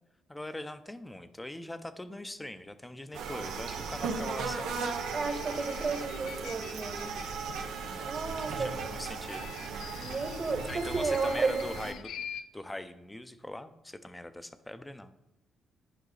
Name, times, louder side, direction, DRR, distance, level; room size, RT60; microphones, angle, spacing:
voice 1, 0.3-4.8 7.8-9.5 10.7-12.1 12.5-15.1, left 1 dB, 10° left, 11 dB, 0.7 m, -42 dB
sound 1, 3.1-11.9, right 5 dB, 85° right, 1.1 m, -37 dB
sound 2, 5.1-7.7 9.2-12.4, left 8 dB, 75° left, 0.6 m, -46 dB
voice 2, 5.1-7.1 8.0-8.7 10.0-11.9, right 4 dB, 40° right, 6 dB, 1.4 m, -32 dB
11.0 x 5.4 x 4.0 m, 0.94 s
cardioid pair, 90°, 0 cm